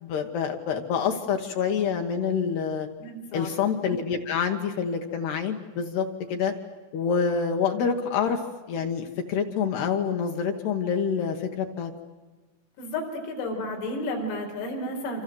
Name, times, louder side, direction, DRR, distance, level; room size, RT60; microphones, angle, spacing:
voice 1, 0.0-2.9 3.3-6.5 6.9-8.4 8.7-11.9, left 6 dB, 65° left, 4 dB, 2.9 m, -27 dB
voice 2, 3.0-3.5 12.8-15.2, left 1 dB, 85° left, 2 dB, 7.7 m, -32 dB
28.0 x 26.5 x 7.8 m, 1.3 s
omnidirectional pair, 5.9 m